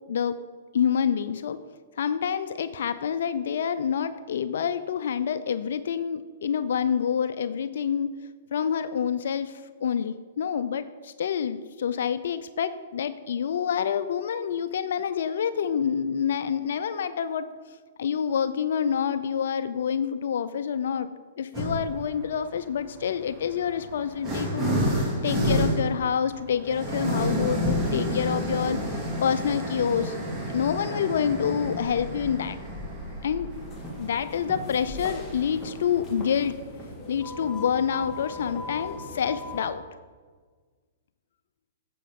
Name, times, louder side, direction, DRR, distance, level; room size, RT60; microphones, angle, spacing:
voice 1, 0.7-1.6 2.0-8.1 8.5-17.5 18.0-21.1 21.4-30.2 30.5-32.6 33.2-33.5 34.0-36.5 37.1-39.8, left 7 dB, 70° left, 13 dB, 0.4 m, -27 dB
sound 1, 21.5-22.0 23.0-36.5, equal, 20° right, 2.3 m, -30 dB
sound 2, 33.5-39.7, left 2 dB, 15° left, 1.9 m, -40 dB
9.3 x 7.6 x 3.6 m, 1.5 s
hypercardioid pair, 125°, 0 cm